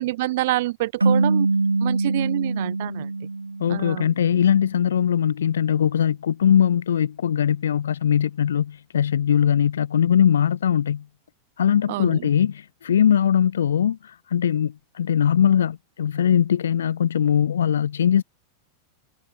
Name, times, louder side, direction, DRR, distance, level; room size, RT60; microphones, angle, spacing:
voice 1, 0.0-1.5 1.8-3.1 3.7-4.1 11.9-12.3, right 17 dB, 55° right, 1.5 m, -27 dB
sound 1, 1.0-4.2, right 3 dB, 80° right, 2.5 m, -23 dB
voice 2, 3.6-11.0 11.6-18.2, left 9 dB, 65° left, 1.0 m, -21 dB
figure-of-eight pair, 90°, 0 cm